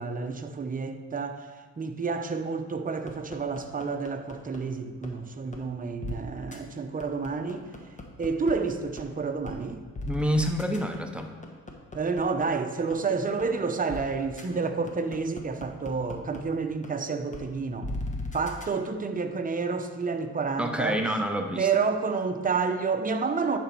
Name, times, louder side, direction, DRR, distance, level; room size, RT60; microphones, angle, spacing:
voice 1, 0.0-1.4 1.8-7.7 8.2-9.8 11.9-17.9 18.3-21.0 21.6-23.6, right 4 dB, 30° right, 6 dB, 0.8 m, -29 dB
sound 1, 3.1-4.6 5.0-5.1 5.5-5.6 6.0-6.1 6.5-6.6 7.0-8.5 9.0-9.1 9.5-9.6 10.0-12.4 12.9-13.0 13.4-13.5 13.9-14.0 14.4-14.5 14.9-16.4 16.8-16.9 17.3-17.4 17.8-18.7, left 2 dB, 25° left, 1.3 m, -37 dB
voice 2, 10.0-11.3 20.6-21.7, equal, 5° right, 4 dB, 0.8 m, -27 dB
10.5 x 5.1 x 4.5 m, 1.4 s
cardioid pair, 90°, 30 cm